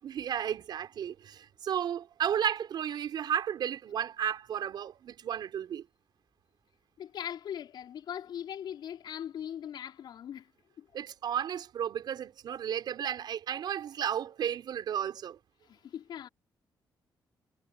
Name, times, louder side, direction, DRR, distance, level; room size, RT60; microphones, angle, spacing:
voice 1, 0.0-5.9 10.9-15.4, right 9 dB, 70° right, 5.3 m, -33 dB
voice 2, 7.0-10.5 10.8-10.9 15.6-16.3, left 9 dB, 75° left, 4.8 m, -40 dB
cardioid pair, 130°, 8 cm